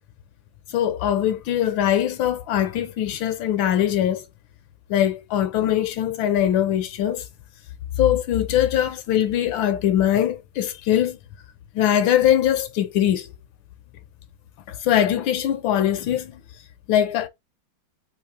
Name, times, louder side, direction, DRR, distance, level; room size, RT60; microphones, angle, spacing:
voice 1, 0.7-4.2 4.9-7.2 8.0-11.2 11.7-13.3 14.7-16.3 16.9-17.3, left 11 dB, 75° left, 1.3 m, -21 dB
3.6 x 3.0 x 4.7 m
omnidirectional pair, 2.3 m